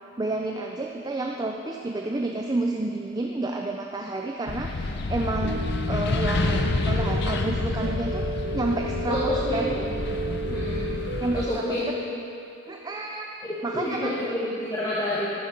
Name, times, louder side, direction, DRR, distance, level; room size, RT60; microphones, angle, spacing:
voice 1, 0.2-4.8 5.1-8.2 8.5-9.8 11.2-12.0 12.7-13.3 13.6-14.1, right 2 dB, 20° right, 2 dB, 0.4 m, -30 dB
sound 1, 4.5-11.5, left 2 dB, 60° left, 0.6 m, -28 dB
sound 2, 5.4-11.5, right 2 dB, 80° right, 0.6 m, -33 dB
voice 2, 9.1-10.0 10.5-10.9 11.3-11.9 13.4-15.3, left 1 dB, 20° left, -9 dB, 1.2 m, -28 dB
10.5 x 7.3 x 5.2 m, 2.7 s
head